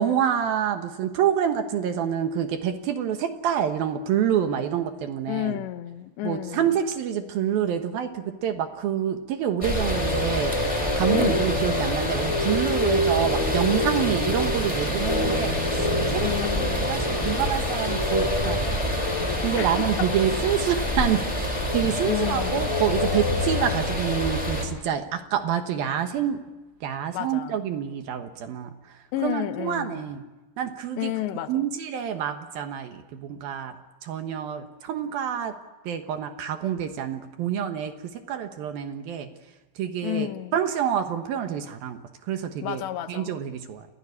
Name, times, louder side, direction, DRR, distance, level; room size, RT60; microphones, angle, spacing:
voice 1, 0.0-5.6 6.2-18.8 19.4-26.4 26.8-28.7 29.2-30.2 30.6-31.1 31.5-33.7 34.0-35.5 35.9-37.9 38.3-39.3 39.8-42.0 42.3-42.8 43.1-43.9, right 9 dB, 65° right, 2.7 m, -27 dB
voice 2, 5.3-6.7 11.1-11.7 16.2-17.0 19.6-20.1 22.0-22.7 27.1-27.6 29.1-30.1 31.0-31.7 40.0-40.6 42.6-43.4, left 14 dB, 80° left, 3.2 m, -31 dB
sound 1, 9.6-24.7, left 1 dB, 5° left, 3.6 m, -25 dB
29.0 x 16.5 x 9.9 m
omnidirectional pair, 5.1 m